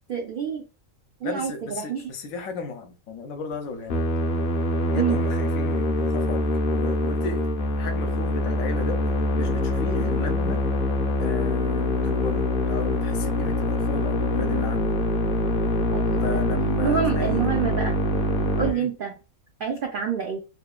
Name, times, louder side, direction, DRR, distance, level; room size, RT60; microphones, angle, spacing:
voice 1, 0.1-0.6 1.2-2.1 4.9-5.2 10.0-10.2 14.4-14.7 15.9-16.5 16.8-18.0 18.6-19.1 19.6-20.4, right 7 dB, 80° right, 0.4 m, -28 dB
voice 2, 1.2-4.0 4.9-9.0 9.3-10.6 11.2-15.0 16.2-17.5 18.6-18.9, left 4 dB, 75° left, 1.0 m, -34 dB
Musical instrument, 3.9-18.7, left 1 dB, 55° left, 0.6 m, -24 dB
3.0 x 2.2 x 2.3 m
omnidirectional pair, 1.5 m